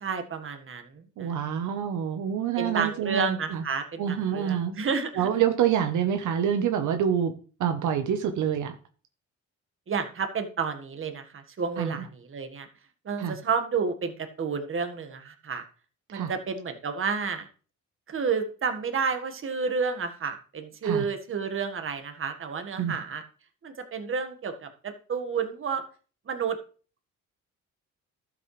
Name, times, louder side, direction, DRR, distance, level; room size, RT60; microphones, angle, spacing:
voice 1, 0.0-1.4 2.5-5.3 9.9-12.7 13.0-15.6 16.1-17.5 18.1-23.2 23.6-25.8 26.3-26.6, right 5 dB, 45° right, 6 dB, 1.6 m, -30 dB
voice 2, 1.2-3.6 4.0-4.7 5.2-7.3 7.6-8.7 11.8-12.1 13.2-13.4 16.1-16.3 20.8-21.0 22.8-22.9, right 9 dB, 80° right, 6 dB, 1.0 m, -26 dB
12.0 x 7.5 x 3.3 m, 0.38 s
cardioid pair, 90°, 30 cm